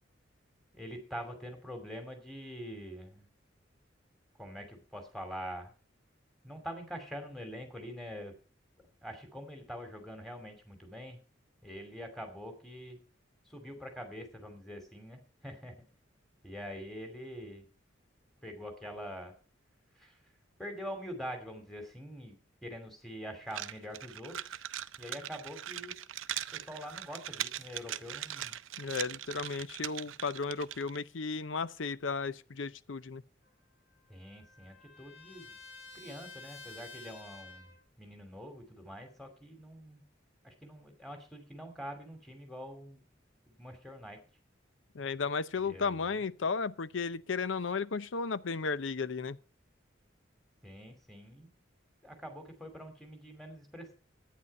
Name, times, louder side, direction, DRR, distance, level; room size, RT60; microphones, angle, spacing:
voice 1, 0.7-3.2 4.4-5.7 6.4-8.3 9.0-11.2 11.6-13.0 13.5-15.7 16.4-17.6 18.4-19.4 20.0-20.2 20.6-24.6 25.0-25.9 26.5-28.6 34.1-35.6 35.9-37.7 38.0-40.0 40.4-43.0 43.5-44.2 45.6-46.2 50.6-51.5 52.0-53.9, equal, ahead, 2.6 m, -45 dB
sound 1, 23.5-31.0, right 12 dB, 90° right, 0.5 m, -40 dB
voice 2, 28.8-33.2 44.9-49.4, left 4 dB, 75° left, 0.6 m, -34 dB
Trumpet, 33.4-37.8, left 3 dB, 55° left, 4.7 m, -51 dB
11.0 x 9.3 x 5.4 m
head